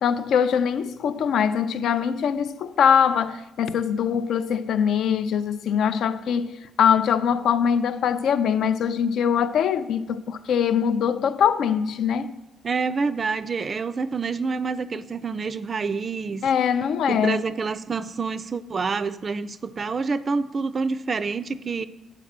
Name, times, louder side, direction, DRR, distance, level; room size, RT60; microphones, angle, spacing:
voice 1, 0.0-12.3 16.4-17.4, left 7 dB, 70° left, 0.5 m, -22 dB
voice 2, 12.6-16.5 17.1-21.9, right 4 dB, 30° right, 0.3 m, -27 dB
9.1 x 5.0 x 7.3 m
cardioid pair, 150°, 0 cm